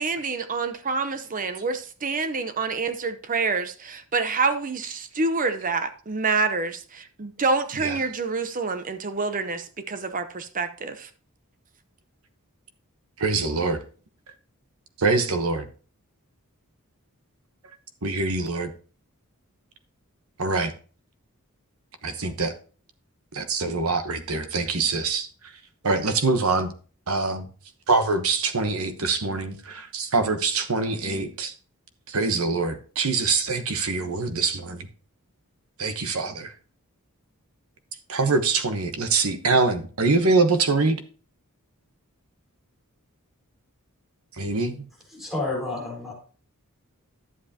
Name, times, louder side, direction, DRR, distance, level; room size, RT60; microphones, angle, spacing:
voice 1, 0.0-11.1, right 4 dB, 40° right, 0.7 m, -27 dB
voice 2, 13.2-13.8 15.0-15.7 18.0-18.7 20.4-20.7 22.0-22.5 23.3-25.3 25.8-26.7 27.1-27.5 27.9-31.5 32.1-34.9 35.8-36.5 38.1-41.0 44.4-44.8, right 3 dB, 70° right, 1.1 m, -24 dB
voice 3, 45.1-46.1, left 2 dB, ahead, 4.1 m, -30 dB
11.5 x 7.5 x 2.8 m
head